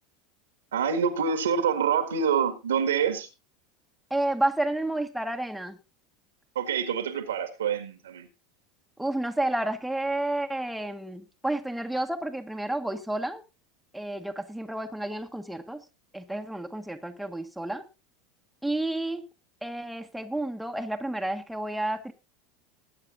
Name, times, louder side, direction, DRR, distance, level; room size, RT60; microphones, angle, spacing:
voice 1, 0.7-3.3 6.6-8.3, right 7 dB, 80° right, 9 dB, 1.7 m, -26 dB
voice 2, 4.1-5.8 9.0-13.4 13.9-15.8 16.1-17.8 18.6-19.2 19.6-22.1, right 1 dB, 5° right, 4 dB, 1.3 m, -30 dB
20.5 x 8.9 x 2.5 m, 0.28 s
hypercardioid pair, 80°, 0 cm